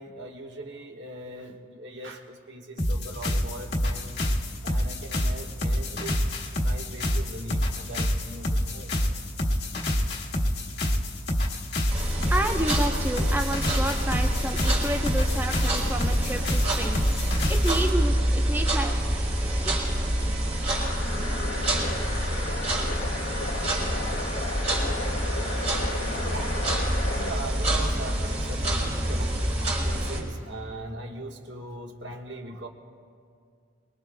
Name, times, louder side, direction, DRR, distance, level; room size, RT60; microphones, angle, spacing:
voice 1, 0.0-4.2 4.6-9.0 26.3-32.7, right 2 dB, 60° right, 1 dB, 1.4 m, -40 dB
sound 1, 2.8-17.9, equal, 60° left, 1.5 m, -27 dB
sound 2, 11.9-30.2, right 1 dB, 35° right, 4.0 m, -27 dB
voice 2, 12.3-20.1, right 1 dB, 10° right, 3 dB, 0.8 m, -31 dB
sound 3, 20.7-27.4, left 2 dB, 80° left, 1.8 m, -34 dB
24.0 x 22.5 x 2.2 m, 2.3 s
head